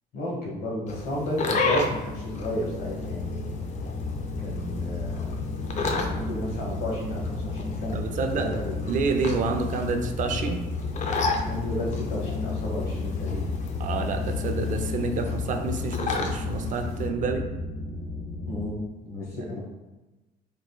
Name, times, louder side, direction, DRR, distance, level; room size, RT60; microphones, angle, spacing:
voice 1, 0.1-3.5 4.4-5.3 6.0-8.9 11.4-13.4 18.5-19.6, left 1 dB, 65° left, -3 dB, 1.2 m, -32 dB
sound 1, 0.9-17.1, left 3 dB, 45° left, 0.5 m, -33 dB
sound 2, 1.9-18.7, left 3 dB, 15° left, 1.0 m, -33 dB
voice 2, 7.9-8.5 8.9-10.6 13.8-17.5, right 4 dB, 50° right, 5 dB, 0.4 m, -28 dB
3.6 x 2.9 x 2.2 m, 1.1 s
cardioid pair, 110°, 17 cm